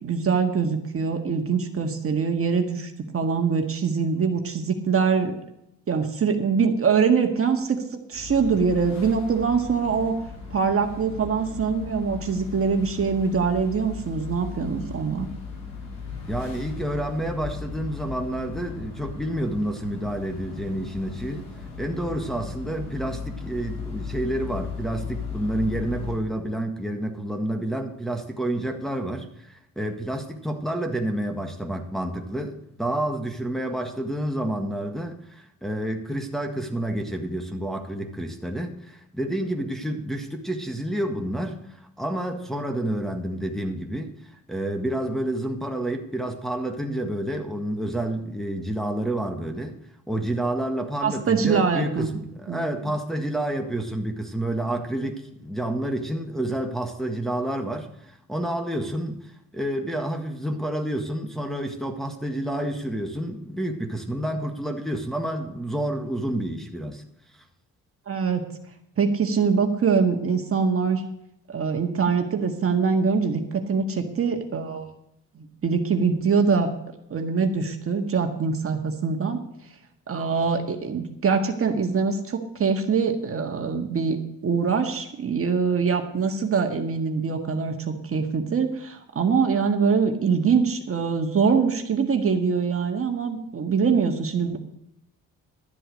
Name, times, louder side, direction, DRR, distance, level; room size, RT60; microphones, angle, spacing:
voice 1, 0.0-5.3 5.9-10.2 10.5-15.3 51.0-52.1 52.5-52.9 68.1-68.4 69.0-71.0 71.5-74.9 75.4-76.7 77.1-79.4 80.1-94.6, right 5 dB, 45° right, 4 dB, 1.8 m, -23 dB
sound 1, 8.1-26.2, left 5 dB, 85° left, 4.2 m, -37 dB
voice 2, 16.3-21.5 21.8-49.8 50.1-67.0, right 1 dB, ahead, 2 dB, 1.7 m, -29 dB
12.5 x 7.7 x 6.4 m, 0.78 s
supercardioid pair, 75°, 32 cm